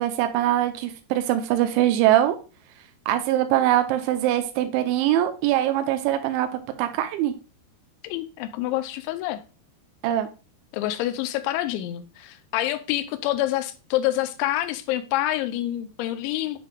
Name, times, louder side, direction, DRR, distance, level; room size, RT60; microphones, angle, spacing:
voice 1, 0.0-2.4 3.1-7.3 10.0-10.3, right 13 dB, 90° right, 3.0 m, -22 dB
voice 2, 8.0-9.4 10.7-16.6, left 14 dB, 85° left, 2.9 m, -27 dB
9.4 x 5.1 x 2.3 m
omnidirectional pair, 5.4 m